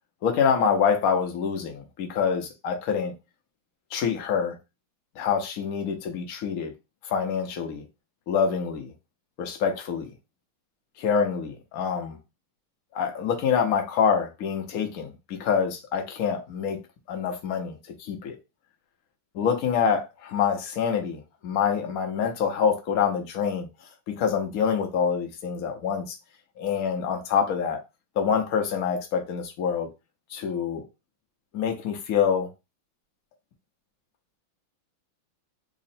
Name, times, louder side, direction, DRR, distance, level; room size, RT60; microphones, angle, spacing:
voice 1, 0.2-3.1 3.9-4.5 5.2-6.7 7.1-7.8 8.3-8.9 9.4-10.1 11.0-12.2 12.9-16.8 17.1-18.4 19.3-23.7 24.1-26.1 26.6-27.8 28.2-29.9 30.3-30.8 31.5-32.5, left 7 dB, 65° left, 0.8 m, -26 dB
3.7 x 2.1 x 4.1 m
omnidirectional pair, 2.3 m